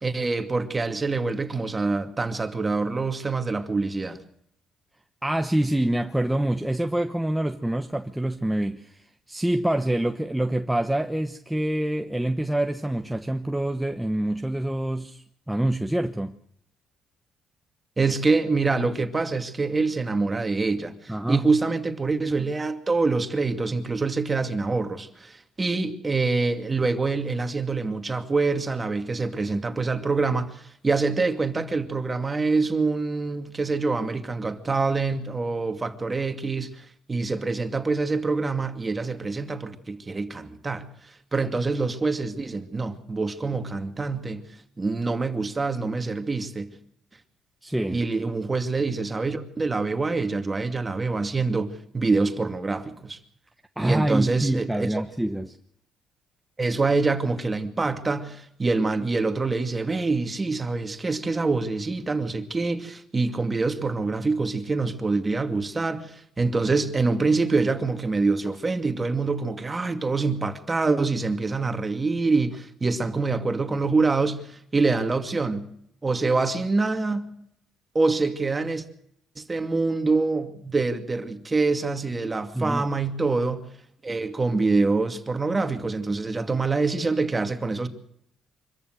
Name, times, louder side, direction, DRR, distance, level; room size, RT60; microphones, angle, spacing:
voice 1, 0.0-4.2 18.0-40.9 41.3-44.5 44.8-46.7 47.9-53.2 53.8-55.0 56.6-75.7 76.0-77.3 77.9-78.8 79.4-83.7 84.0-87.9, right 3 dB, 25° right, 2.4 m, -25 dB
voice 2, 5.2-16.4 21.1-21.5 47.6-48.0 53.8-55.6 82.5-82.8, right 1 dB, 5° right, 1.1 m, -26 dB
25.0 x 14.0 x 7.9 m
cardioid pair, 90°, 0 cm